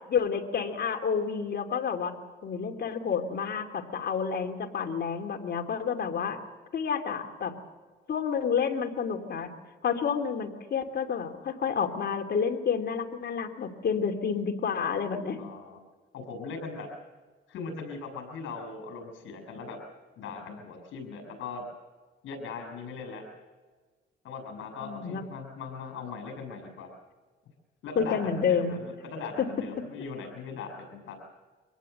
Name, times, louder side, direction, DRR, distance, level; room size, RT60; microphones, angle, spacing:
voice 1, 0.1-2.1 2.4-6.4 6.7-7.5 8.1-9.5 9.8-15.4 24.8-25.2 28.0-28.8, left 6 dB, 55° left, 5 dB, 2.8 m, -29 dB
voice 2, 15.3-15.8 16.1-16.9 17.5-19.8 20.2-21.6 22.2-23.2 24.2-26.9 27.8-31.2, left 4 dB, 80° left, 5 dB, 6.5 m, -39 dB
25.0 x 18.5 x 7.9 m, 1.4 s
cardioid pair, 90°, 20 cm